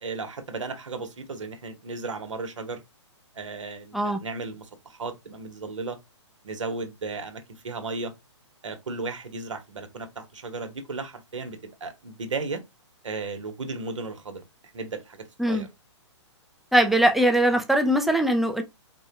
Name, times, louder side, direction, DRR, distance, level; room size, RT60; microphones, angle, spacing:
voice 1, 0.0-2.8 3.3-6.0 6.4-8.1 8.6-12.6 13.0-14.4 14.7-15.7, right 3 dB, 85° right, 1.0 m, -35 dB
voice 2, 16.7-18.6, right 1 dB, ahead, 0.3 m, -21 dB
4.2 x 2.2 x 2.8 m
hypercardioid pair, 135°, 15 cm